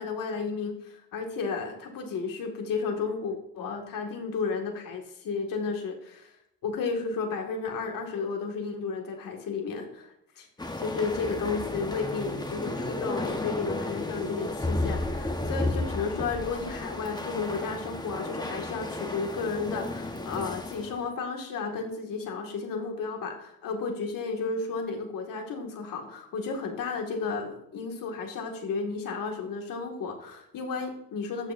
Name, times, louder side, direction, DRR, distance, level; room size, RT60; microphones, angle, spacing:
voice 1, 0.0-6.3 6.6-10.5 10.8-31.5, left 4 dB, 60° left, 2 dB, 2.1 m, -33 dB
sound 1, 10.6-21.1, left 2 dB, 10° left, 1.3 m, -33 dB
13.0 x 6.7 x 2.7 m, 0.78 s
supercardioid pair, 85°, 37 cm